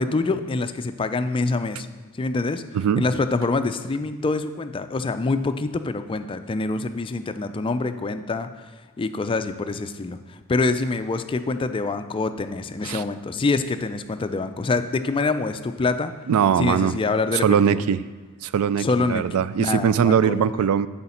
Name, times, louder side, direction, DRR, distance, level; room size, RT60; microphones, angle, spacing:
voice 1, 0.0-1.9 2.1-2.6 3.0-8.7 9.0-16.1 16.6-17.8 18.8-20.7, left 3 dB, 25° left, 10 dB, 0.3 m, -25 dB
voice 2, 2.7-3.0 12.8-13.0 16.3-16.9 17.3-18.0 18.4-20.9, right 8 dB, 70° right, 17 dB, 0.3 m, -21 dB
8.1 x 5.6 x 4.3 m, 1.4 s
head